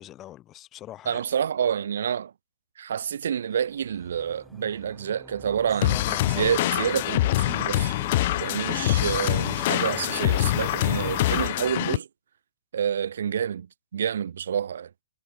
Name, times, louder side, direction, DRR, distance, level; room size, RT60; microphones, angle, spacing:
voice 1, 0.0-1.2 5.7-6.6, left 13 dB, 20° left, 5.2 m, -42 dB
voice 2, 1.1-2.3 2.8-7.9 8.4-12.1 12.7-13.7 13.9-14.9, right 8 dB, 65° right, 1.0 m, -28 dB
sound 1, 3.6-11.5, equal, ahead, 2.9 m, -43 dB
sound 2, 5.8-12.0, left 16 dB, 40° left, 0.6 m, -25 dB
hypercardioid pair, 145°, 0 cm